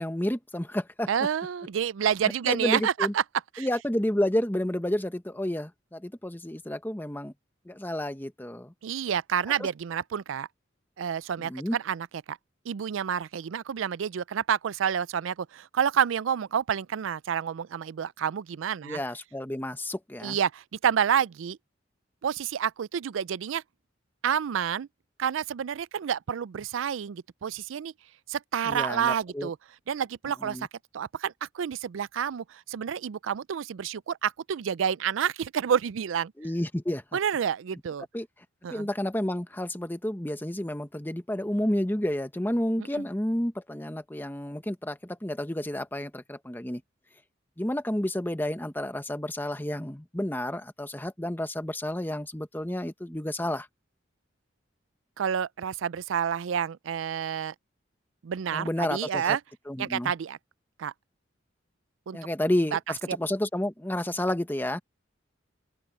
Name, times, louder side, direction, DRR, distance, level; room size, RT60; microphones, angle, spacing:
voice 1, 0.0-1.1 2.4-3.1 3.6-7.3 7.7-8.7 9.6-9.7 11.4-11.8 18.8-20.4 28.6-29.5 30.4-30.7 36.4-37.2 38.1-38.3 38.7-46.8 47.6-53.7 58.5-59.4 59.7-60.1 62.1-64.8, left 1 dB, 10° left, 1.1 m, -30 dB
voice 2, 1.1-3.2 3.6-3.7 8.8-10.5 11.0-12.4 12.7-19.0 20.2-21.6 22.2-23.6 24.2-24.9 25.2-27.9 28.3-29.6 29.9-30.7 30.9-36.3 37.1-38.0 38.6-38.9 42.8-43.0 55.2-57.5 58.2-59.4 59.8-60.4 60.8-60.9 62.1-62.2 62.7-62.8 63.1-63.2, right 8 dB, 85° right, 0.4 m, -29 dB
open air
head